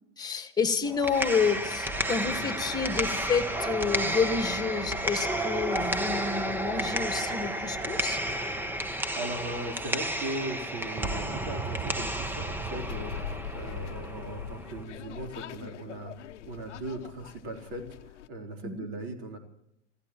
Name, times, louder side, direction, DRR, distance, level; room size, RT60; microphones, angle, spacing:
voice 1, 0.2-8.2 18.6-18.9, left 5 dB, 10° left, 7 dB, 1.7 m, -29 dB
sound 1, 0.8-14.8, right 1 dB, 5° right, 0.8 m, -32 dB
voice 2, 9.1-13.1 13.5-16.1 16.4-17.8 18.3-19.4, right 1 dB, 55° right, 3 dB, 3.8 m, -38 dB
sound 2, 12.8-18.3, left 10 dB, 75° left, 0.9 m, -42 dB
27.0 x 15.5 x 3.0 m, 0.77 s
hypercardioid pair, 110°, 36 cm